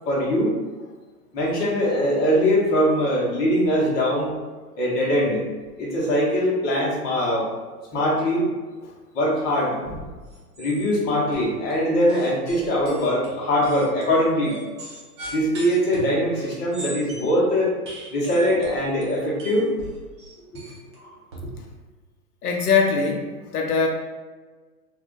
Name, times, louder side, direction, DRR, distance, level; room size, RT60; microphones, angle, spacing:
voice 1, 0.1-0.6 1.3-4.3 4.8-5.5 5.8-7.5 7.9-8.5 9.1-9.8 10.6-14.6 15.3-17.7 18.1-19.7, equal, 20° left, -4 dB, 0.7 m, -22 dB
sound 1, 9.8-10.1 10.3-10.9 11.3-11.7 12.1-17.3 17.9-21.4, equal, 20° right, 0.4 m, -39 dB
voice 2, 22.4-23.9, left 5 dB, 75° left, 1 dB, 0.6 m, -22 dB
2.4 x 2.2 x 3.6 m, 1.3 s
hypercardioid pair, 115°, 46 cm